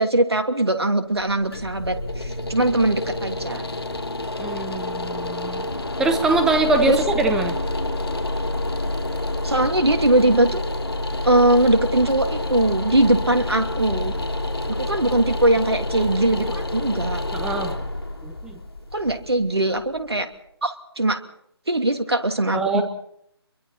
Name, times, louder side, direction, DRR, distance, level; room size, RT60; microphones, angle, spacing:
voice 1, 0.0-3.7 6.9-7.0 9.4-10.6 11.2-14.1 14.7-17.2 18.9-20.3 20.6-21.2 21.7-22.8, right 1 dB, 70° right, 6 dB, 2.8 m, -21 dB
sound 1, 1.1-20.1, left 1 dB, 65° left, 2.9 m, -28 dB
voice 2, 4.4-5.7 6.0-7.6 17.3-17.7 18.2-18.6 22.5-22.8, right 3 dB, 5° right, 7 dB, 1.1 m, -23 dB
28.5 x 23.0 x 4.3 m, 0.73 s
figure-of-eight pair, 155°, 14 cm